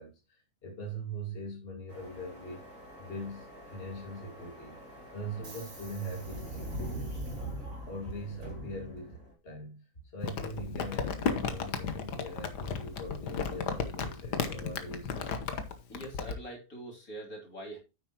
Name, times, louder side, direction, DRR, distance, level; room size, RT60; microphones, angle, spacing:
voice 1, 0.0-2.6 3.0-4.8 5.1-6.6 7.9-15.3, right 1 dB, 35° left, 2.5 m, -41 dB
Subway metro underground, 1.9-9.3, right 1 dB, 55° right, 3.1 m, -42 dB
Crumpling crinkling, 10.2-16.3, left 5 dB, 85° left, 1.8 m, -34 dB
voice 2, 15.9-17.8, right 1 dB, 60° left, 3.5 m, -43 dB
9.5 x 8.0 x 3.0 m
omnidirectional pair, 1.7 m